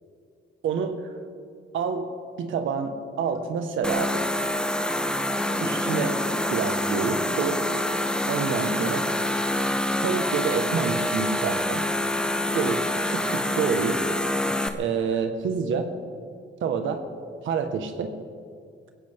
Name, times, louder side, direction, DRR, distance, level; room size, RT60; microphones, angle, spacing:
voice 1, 0.6-1.1 1.7-2.1 2.4-4.2 5.6-6.2 6.5-7.6 8.3-9.1 10.0-11.8 12.5-14.0 14.7-15.9 16.6-17.0 17.4-18.1, right 6 dB, 80° right, 7 dB, 1.6 m, -28 dB
sound 1, 3.8-14.7, left 1 dB, 5° left, 1.2 m, -26 dB
22.0 x 16.0 x 3.7 m, 2.2 s
cardioid pair, 90°, 20 cm